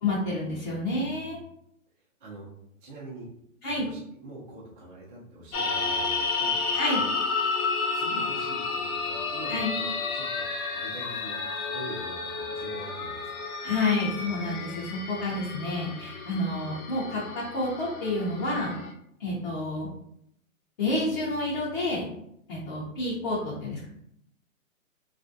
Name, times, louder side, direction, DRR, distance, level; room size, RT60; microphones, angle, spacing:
voice 1, 0.0-1.4 3.6-3.9 6.7-7.0 9.5-9.7 13.6-18.7 19.2-19.9 20.8-22.1 22.5-23.8, left 2 dB, 30° left, -8 dB, 0.6 m, -29 dB
voice 2, 2.8-3.3 3.7-6.6 7.9-13.4, right 1 dB, 35° right, -6 dB, 0.8 m, -44 dB
sound 1, 5.5-18.9, left 4 dB, 80° left, 0.7 m, -31 dB
3.0 x 2.5 x 2.6 m, 0.74 s
hypercardioid pair, 155°, 42 cm